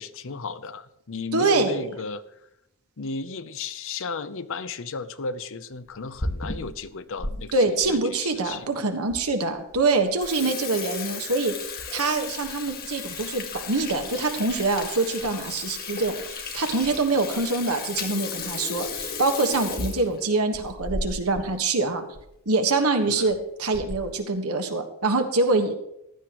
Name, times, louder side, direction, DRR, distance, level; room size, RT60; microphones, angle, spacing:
voice 1, 0.0-2.4 3.0-8.7 23.1-23.3, left 4 dB, 65° left, 13 dB, 0.7 m, -34 dB
voice 2, 1.3-1.9 7.5-11.5 11.9-22.0 22.4-25.7, right 3 dB, 90° right, 6 dB, 1.5 m, -25 dB
Water tap faucet / Sink (filling or washing), 5.9-7.3 7.8-7.9 8.6-8.7 9.1-9.2 9.6-9.8 10.1-21.5 21.8-21.9 22.1-22.3 23.1-23.3 23.7-24.2, left 4 dB, 45° left, 1.6 m, -34 dB
15.5 x 11.5 x 3.1 m, 0.80 s
head